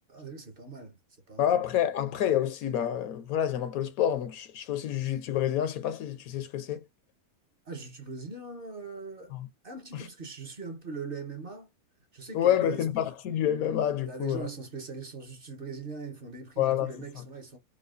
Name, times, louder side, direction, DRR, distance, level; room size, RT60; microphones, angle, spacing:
voice 1, 0.1-1.0 1.3-1.6 7.6-9.3 9.6-11.7 12.1-13.1 14.0-17.6, right 4 dB, 45° right, 1.0 m, -41 dB
voice 2, 1.4-6.8 9.3-9.5 9.9-10.0 12.3-14.5 16.6-16.9, left 10 dB, 75° left, 1.1 m, -28 dB
4.8 x 2.3 x 2.4 m
omnidirectional pair, 1.5 m